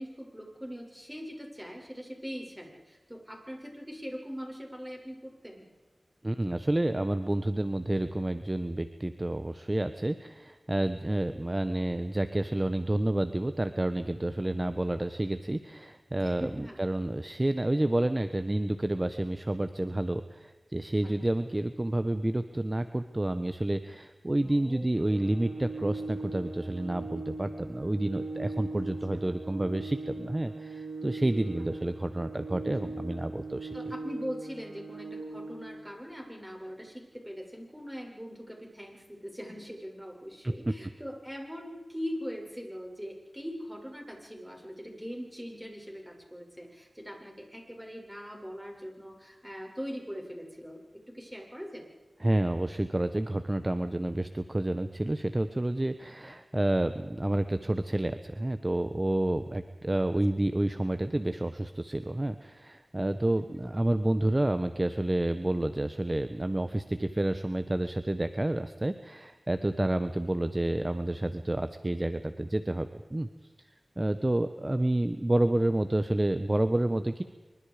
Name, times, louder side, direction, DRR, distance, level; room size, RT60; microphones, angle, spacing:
voice 1, 0.0-5.7 11.1-11.2 16.2-16.8 21.0-21.3 24.4-24.9 28.8-28.9 33.7-51.9 63.3-63.5, equal, 5° right, 1 dB, 7.6 m, -41 dB
voice 2, 6.2-33.7 40.4-40.7 52.2-73.3 74.0-77.2, right 1 dB, 30° right, 10 dB, 1.3 m, -29 dB
Organ, 24.9-35.9, right 3 dB, 75° right, 5.9 m, -40 dB
25.5 x 24.0 x 5.2 m, 1.2 s
cardioid pair, 45°, 0 cm